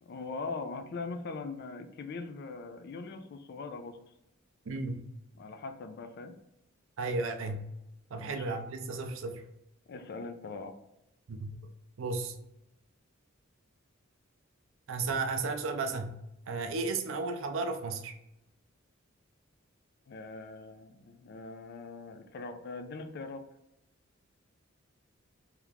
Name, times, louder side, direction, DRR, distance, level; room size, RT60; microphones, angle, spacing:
voice 1, 0.0-4.0 5.4-6.3 8.1-8.6 9.9-10.8 20.1-23.4, left 3 dB, 50° left, 7 dB, 0.4 m, -41 dB
voice 2, 4.7-5.1 7.0-7.7 8.1-9.4 11.3-11.6 12.0-12.4 14.9-16.2 16.5-18.1, right 3 dB, 65° right, 5 dB, 0.4 m, -34 dB
2.9 x 2.4 x 3.4 m, 0.86 s
head